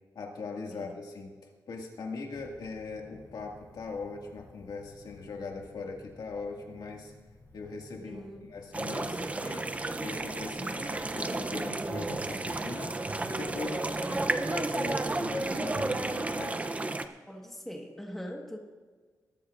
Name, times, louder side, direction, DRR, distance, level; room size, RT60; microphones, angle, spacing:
voice 1, 0.2-7.1 7.5-8.2 8.5-9.7 10.0-13.0 13.3-16.6, left 4 dB, 85° left, 1 dB, 1.9 m, -40 dB
sound 1, 2.3-16.4, left 2 dB, 45° left, 3.7 m, -56 dB
voice 2, 8.0-8.4 10.6-11.6 13.8-14.3 17.3-18.6, equal, 5° left, 1 dB, 1.4 m, -43 dB
sound 2, 8.7-17.1, right 2 dB, 20° right, 0.5 m, -32 dB
20.0 x 13.0 x 2.5 m, 1.4 s
wide cardioid pair, 155°, 7 cm